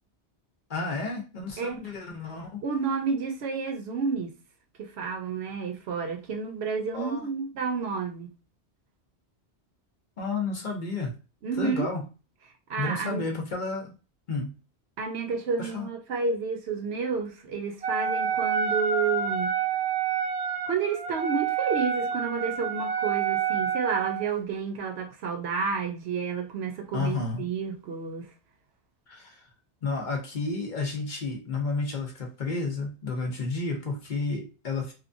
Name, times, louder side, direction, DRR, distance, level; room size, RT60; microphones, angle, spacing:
voice 1, 0.7-2.6 6.9-7.3 10.2-11.2 11.6-12.0 12.8-13.9 14.3-14.5 15.6-15.9 26.9-27.4 29.1-29.4 29.8-34.9, left 3 dB, 50° left, 0.7 m, -31 dB
voice 2, 2.6-4.3 4.8-8.3 11.4-11.9 12.7-13.2 15.0-19.6 20.7-28.3, right 5 dB, 70° right, 0.9 m, -30 dB
Wind instrument woodwind instrument, 17.8-24.3, right 7 dB, 55° right, 0.4 m, -28 dB
2.9 x 2.3 x 2.5 m
omnidirectional pair, 1.1 m